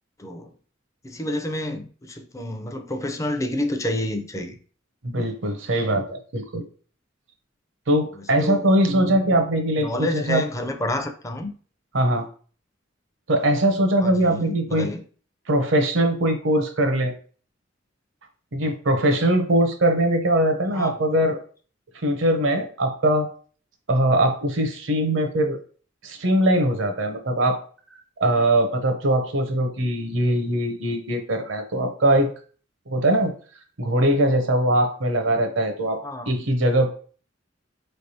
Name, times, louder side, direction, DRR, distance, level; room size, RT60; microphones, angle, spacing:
voice 1, 0.2-0.5 1.0-4.6 8.4-8.7 9.8-11.5 14.0-15.0 20.7-21.0 36.0-36.5, left 1 dB, 15° left, 0.5 m, -29 dB
voice 2, 5.0-6.6 7.9-10.4 11.9-12.3 13.3-14.9 15.5-17.1 18.5-21.4 22.0-23.3 23.9-25.6 26.0-27.6 28.2-32.3 32.9-33.3 33.8-36.0 36.3-36.9, right 1 dB, 75° right, 0.8 m, -21 dB
4.7 x 3.3 x 2.8 m
head